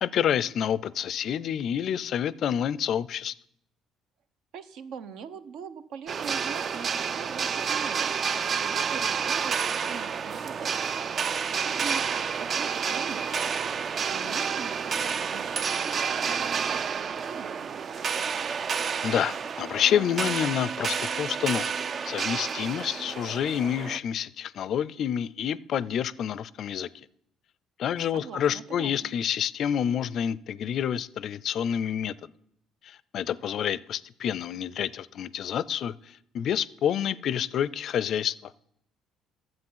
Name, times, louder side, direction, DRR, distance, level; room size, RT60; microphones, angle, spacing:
voice 1, 0.0-3.3 19.0-21.7 22.0-26.9 27.8-32.3 32.8-38.5, left 9 dB, 60° left, 20 dB, 0.4 m, -28 dB
voice 2, 4.5-14.8 15.0-18.3 28.1-29.1, right 7 dB, 75° right, 12 dB, 0.7 m, -43 dB
sound 1, 6.1-24.0, right 6 dB, 45° right, 0.3 m, -30 dB
10.5 x 7.7 x 5.6 m, 0.72 s
cardioid pair, 90°, 0 cm